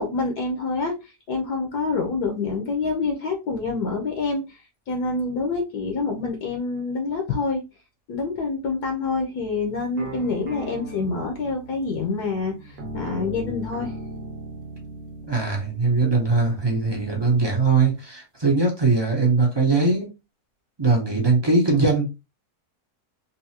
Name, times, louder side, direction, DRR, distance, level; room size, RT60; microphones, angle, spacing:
voice 1, 0.0-4.6 4.9-7.6 8.1-14.0, left 3 dB, 70° left, 1.3 m, -27 dB
sound 1, 10.0-17.4, right 1 dB, 45° right, 0.9 m, -38 dB
voice 2, 15.3-20.1 20.8-22.1, right 3 dB, 25° right, 0.5 m, -21 dB
3.9 x 2.7 x 2.8 m
omnidirectional pair, 1.9 m